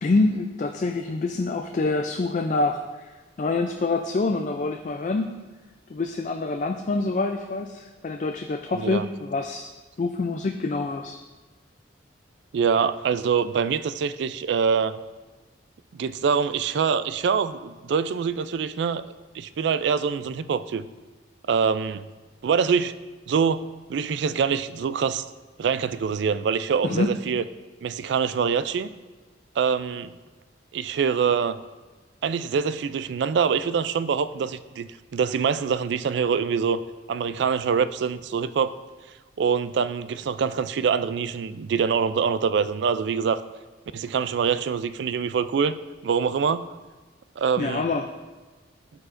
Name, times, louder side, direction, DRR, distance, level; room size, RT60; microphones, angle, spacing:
voice 1, 0.0-3.1 3.4-5.4 5.9-9.7 10.0-11.2 26.8-27.1 47.6-48.1, left 3 dB, 40° left, 4 dB, 0.3 m, -26 dB
voice 2, 8.7-9.0 12.5-15.0 15.9-19.0 19.3-20.9 21.5-22.0 22.4-22.9 23.3-23.6 23.9-25.2 25.6-27.4 27.8-28.9 29.6-30.1 30.7-31.6 32.2-36.8 37.1-38.7 39.4-43.4 43.9-46.7 47.4-47.8, right 6 dB, 65° right, 13 dB, 0.3 m, -24 dB
12.5 x 4.7 x 2.5 m, 1.3 s
head